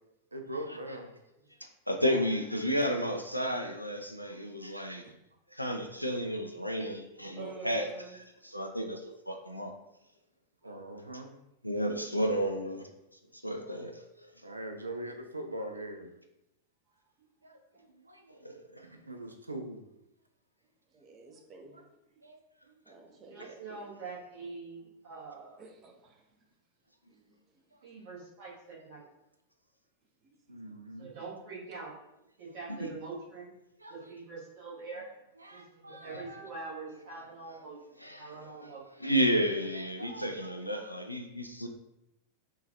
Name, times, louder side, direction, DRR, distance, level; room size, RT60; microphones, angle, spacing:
voice 1, 0.3-1.1 7.2-7.3 10.6-11.3 13.6-13.7 14.4-16.1 17.4-18.5 18.8-19.8 21.7-21.8 22.2-22.4 22.7-22.8 23.1-23.2 30.5-31.1 33.8-34.1 35.4-36.5 40.0-41.0, right 1 dB, 80° right, 5 dB, 0.3 m, -43 dB
voice 2, 1.9-5.0 5.5-7.9 8.5-9.7 11.6-12.9 13.4-14.0 18.4-18.6 32.8-32.9 38.0-38.3 39.0-41.7, equal, 90° left, 4 dB, 0.3 m, -31 dB
voice 3, 7.3-8.2 10.6-10.7 17.2-17.3 20.9-21.9 22.8-23.8 25.6-26.2 27.1-27.6 30.2-30.7, right 5 dB, 30° right, 2 dB, 0.5 m, -50 dB
voice 4, 23.2-25.6 27.8-29.0 31.0-31.9 32.4-33.5 33.9-35.1 35.5-37.8 38.2-38.8, right 4 dB, 50° right, -5 dB, 1.1 m, -44 dB
3.6 x 2.3 x 2.8 m, 0.87 s
figure-of-eight pair, 90°, 0 cm